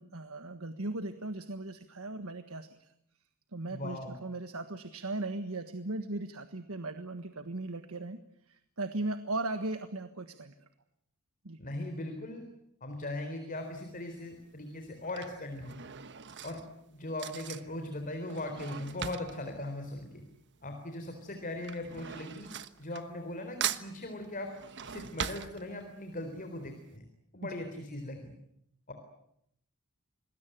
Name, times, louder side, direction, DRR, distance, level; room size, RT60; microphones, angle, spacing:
voice 1, 0.0-2.9 3.5-8.2 8.5-10.7 11.4-11.6 27.4-27.5, right 2 dB, 75° right, 9 dB, 1.5 m, -38 dB
voice 2, 3.7-4.2 11.6-12.4 12.8-15.8 16.4-16.6 16.9-20.2 20.6-22.5 22.8-24.5 24.8-27.1 27.3-28.3 28.9-29.0, left 1 dB, 40° left, 5 dB, 3.9 m, -39 dB
Drawer open or close / Cutlery silverware, 13.6-14.0 14.8-20.7 21.0-23.4 23.6-26.1 26.6-26.7 26.9-27.0, right 8 dB, 55° right, 1.3 m, -40 dB
26.5 x 20.5 x 9.2 m, 0.76 s
head